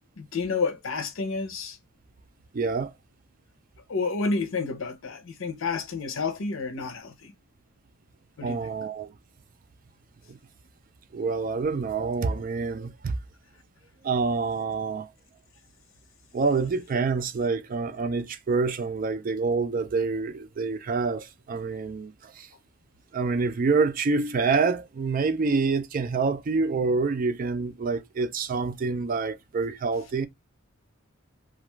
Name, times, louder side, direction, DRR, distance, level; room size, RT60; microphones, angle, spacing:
voice 1, 0.2-1.8 3.9-7.3 8.4-8.6, left 4 dB, 75° left, 0.6 m, -30 dB
voice 2, 2.5-2.9 8.4-9.1 10.3-10.4 11.1-13.2 14.0-15.1 16.3-22.5 23.1-30.3, right 4 dB, 40° right, 0.4 m, -27 dB
2.4 x 2.3 x 3.0 m
head